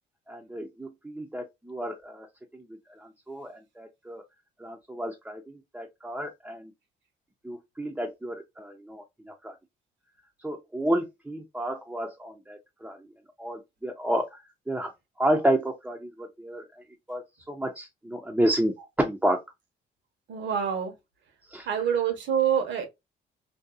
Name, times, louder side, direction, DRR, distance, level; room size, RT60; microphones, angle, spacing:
voice 1, 0.3-2.3 2.5-2.6 3.3-4.2 4.6-6.7 7.4-9.5 10.4-13.0 13.4-14.4 14.7-14.9 15.2-16.6 17.1-19.4 21.5-21.7, right 1 dB, 5° right, 0.5 m, -30 dB
voice 2, 20.3-20.9 21.7-22.8, right 8 dB, 70° right, 1.0 m, -26 dB
2.7 x 2.3 x 2.3 m
cardioid pair, 90°, 20 cm